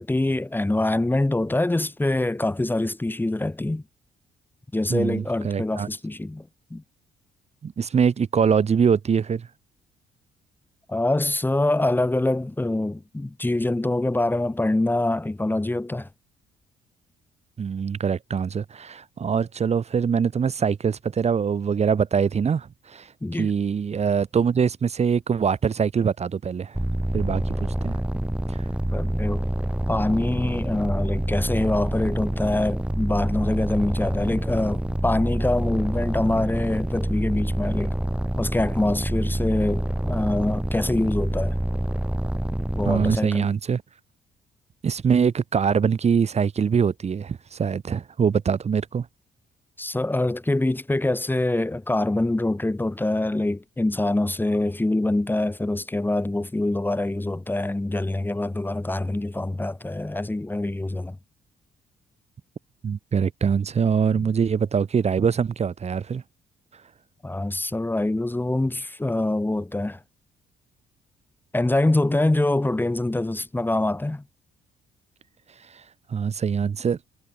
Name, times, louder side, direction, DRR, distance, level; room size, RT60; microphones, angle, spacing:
voice 1, 0.0-3.8 4.7-6.8 10.9-16.1 23.2-23.5 28.9-29.4 29.9-38.0 38.4-41.6 42.7-43.5 49.8-61.2 64.1-64.3 67.2-70.0 71.5-74.2, left 2 dB, 10° left, 3.7 m, -25 dB
voice 2, 4.9-5.9 7.6-9.5 17.6-23.1 23.4-26.8 27.1-28.0 28.5-28.6 42.8-43.8 44.8-49.1 62.8-66.2 75.7-75.8 76.1-77.0, right 6 dB, 45° right, 2.7 m, -23 dB
sound 1, 26.7-43.2, right 1 dB, 5° right, 4.5 m, -27 dB
cardioid pair, 80°, 16 cm